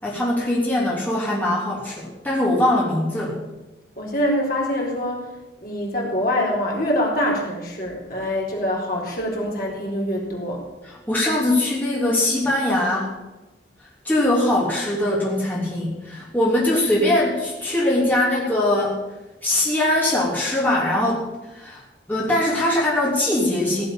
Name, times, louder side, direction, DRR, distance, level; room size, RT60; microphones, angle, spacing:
voice 1, 0.0-3.4 10.8-13.1 14.0-19.0 19.4-21.3 21.5-21.8 22.1-23.8, left 1 dB, 10° left, -6 dB, 3.2 m, -21 dB
voice 2, 4.0-5.2 5.6-10.6, left 1 dB, 50° left, -3 dB, 4.1 m, -24 dB
16.5 x 7.5 x 8.8 m, 1.1 s
head